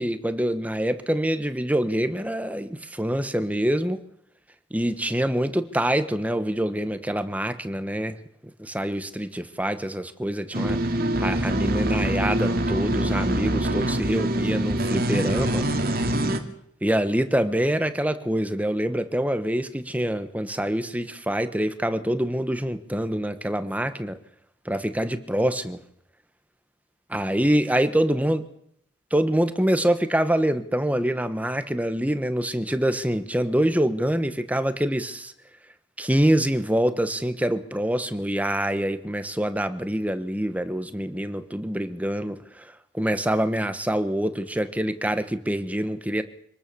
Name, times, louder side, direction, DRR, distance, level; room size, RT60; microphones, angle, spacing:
voice 1, 0.0-4.0 4.7-8.2 8.6-15.7 16.8-24.2 24.6-25.8 27.1-28.4 29.1-35.3 36.0-46.2, right 1 dB, 10° right, 10 dB, 1.3 m, -25 dB
sound 1, 10.5-16.4, right 1 dB, 50° right, 2.6 m, -24 dB
26.5 x 20.0 x 7.0 m, 0.70 s
head